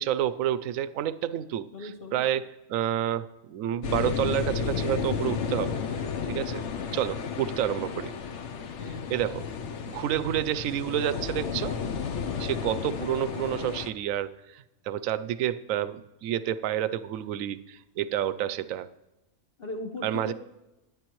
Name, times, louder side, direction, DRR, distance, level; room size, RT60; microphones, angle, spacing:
voice 1, 0.0-5.8 6.3-6.6 6.9-8.1 9.1-9.4 9.8-11.8 12.4-18.9 20.0-20.3, right 11 dB, 75° right, 15 dB, 1.0 m, -29 dB
voice 2, 1.7-2.2 8.8-9.1 19.6-20.3, left 2 dB, 45° left, 1 dB, 1.2 m, -38 dB
sound 1, 3.8-13.9, left 6 dB, 60° left, 1.0 m, -32 dB
26.0 x 9.3 x 3.1 m, 0.96 s
omnidirectional pair, 1.5 m